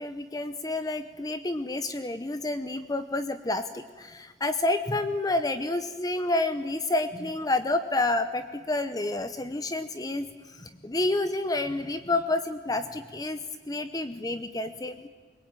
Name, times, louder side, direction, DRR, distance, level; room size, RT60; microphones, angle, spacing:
voice 1, 0.0-10.3 10.5-13.4 13.7-15.0, left 2 dB, 20° left, 10 dB, 0.8 m, -29 dB
24.0 x 22.0 x 9.1 m, 1.4 s
head